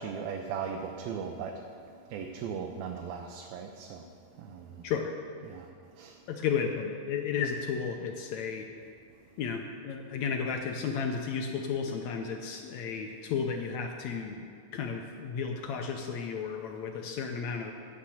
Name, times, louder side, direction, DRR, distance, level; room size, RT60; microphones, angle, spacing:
voice 1, 0.0-4.1 4.4-4.8 5.4-5.7 5.9-6.2, right 6 dB, 90° right, 2 dB, 2.6 m, -38 dB
voice 2, 6.3-8.7 9.4-14.5 14.7-17.7, left 6 dB, 80° left, 3 dB, 1.6 m, -33 dB
16.5 x 6.4 x 7.1 m, 2.4 s
omnidirectional pair, 4.1 m